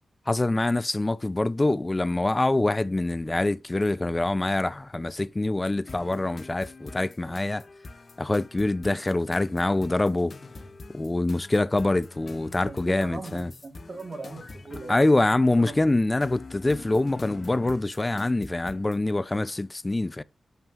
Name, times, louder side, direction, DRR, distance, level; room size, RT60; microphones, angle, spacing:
voice 1, 0.3-7.7 8.2-10.3 10.9-13.5 14.9-20.2, left 2 dB, 20° left, 0.3 m, -25 dB
sound 1, 5.9-19.0, left 3 dB, 45° left, 0.8 m, -45 dB
voice 2, 12.7-15.9, right 3 dB, 45° right, 1.4 m, -40 dB
7.1 x 5.6 x 2.4 m
wide cardioid pair, 90°, 0 cm